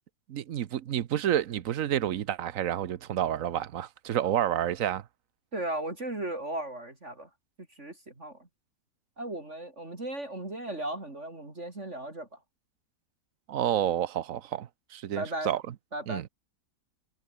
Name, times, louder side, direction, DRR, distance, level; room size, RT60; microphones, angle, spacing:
voice 1, 0.3-5.0 13.5-15.6 16.1-16.3, right 11 dB, 55° right, 1.1 m, -29 dB
voice 2, 5.5-7.3 7.8-8.4 9.2-12.3 15.2-15.5 15.9-16.2, right 1 dB, 40° right, 4.4 m, -36 dB
omnidirectional pair, 1.9 m